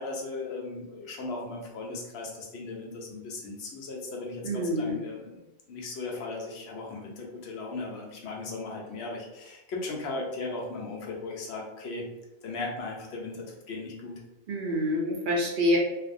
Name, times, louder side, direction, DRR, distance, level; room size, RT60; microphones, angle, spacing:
voice 1, 0.0-5.4 5.7-12.1 12.4-14.2, left 3 dB, 90° left, -1 dB, 0.9 m, -37 dB
voice 2, 4.4-5.0 14.5-15.8, equal, 60° right, -1 dB, 0.6 m, -26 dB
2.5 x 2.0 x 2.5 m, 1.0 s
omnidirectional pair, 1.1 m